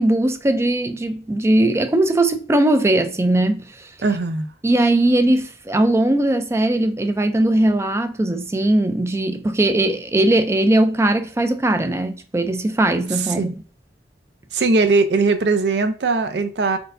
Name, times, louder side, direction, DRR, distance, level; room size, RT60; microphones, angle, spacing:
voice 1, 0.0-3.9 4.6-13.5, right 1 dB, 15° right, 0.4 m, -19 dB
voice 2, 4.0-4.5 13.4-13.5 14.5-16.8, right 3 dB, 65° right, 0.5 m, -19 dB
4.4 x 4.2 x 2.5 m
head